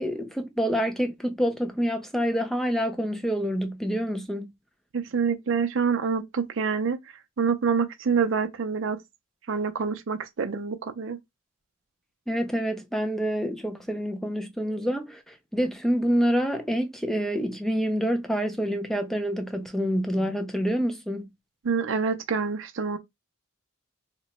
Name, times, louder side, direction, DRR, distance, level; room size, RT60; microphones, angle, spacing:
voice 1, 0.0-4.5 12.3-21.3, equal, ahead, 0.4 m, -27 dB
voice 2, 4.9-7.0 7.4-9.0 9.5-11.2 21.6-23.0, right 5 dB, 65° right, 0.5 m, -26 dB
2.9 x 2.2 x 4.0 m
head